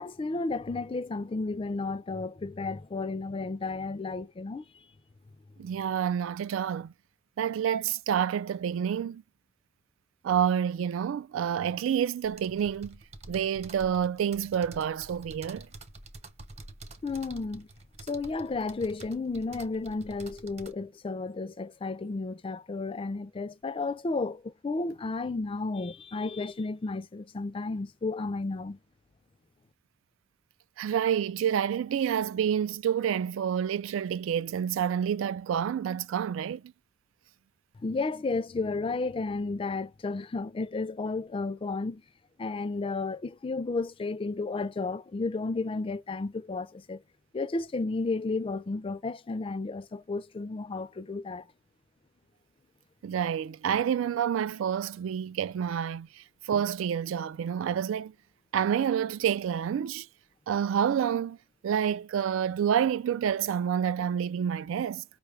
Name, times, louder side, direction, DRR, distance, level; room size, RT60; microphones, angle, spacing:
voice 1, 0.0-4.7 17.0-17.7 18.1-28.8 37.8-42.0 42.4-47.0 47.3-51.5, left 3 dB, 25° left, 0.4 m, -32 dB
voice 2, 5.6-6.9 7.4-9.2 10.2-13.0 13.3-15.7 30.8-36.6 53.0-56.1 56.5-58.1 58.5-60.1 60.5-61.4 61.6-65.0, right 8 dB, 75° right, 0.3 m, -28 dB
sound 1, 12.2-20.7, right 2 dB, 35° right, 0.8 m, -48 dB
5.5 x 2.4 x 3.3 m
head